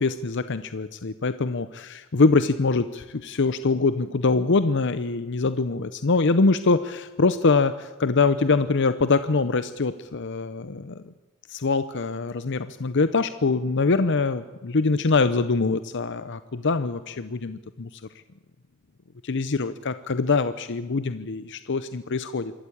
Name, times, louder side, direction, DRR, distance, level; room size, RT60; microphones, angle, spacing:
voice 1, 0.0-11.0 11.5-17.9 19.2-22.5, left 3 dB, 60° left, 13 dB, 0.7 m, -24 dB
25.5 x 14.0 x 8.7 m, 1.1 s
head